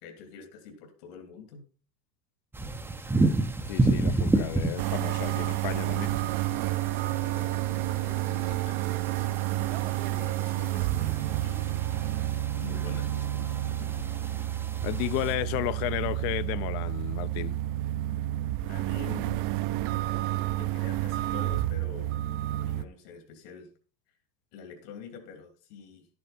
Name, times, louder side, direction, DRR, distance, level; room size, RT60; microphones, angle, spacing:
voice 1, 0.0-1.6 7.0-7.6 7.9-9.3 10.0-12.0 12.6-13.4 13.8-13.9 18.7-19.4 20.6-22.2 22.6-23.7 24.5-26.1, left 6 dB, 75° left, 3.2 m, -46 dB
sound 1, 2.5-15.3, right 2 dB, 5° right, 0.6 m, -32 dB
voice 2, 3.7-6.1 14.8-17.6, left 16 dB, 50° left, 0.7 m, -33 dB
sound 2, 4.8-22.8, right 15 dB, 50° right, 0.7 m, -30 dB
11.5 x 9.5 x 4.3 m
supercardioid pair, 140°, 48 cm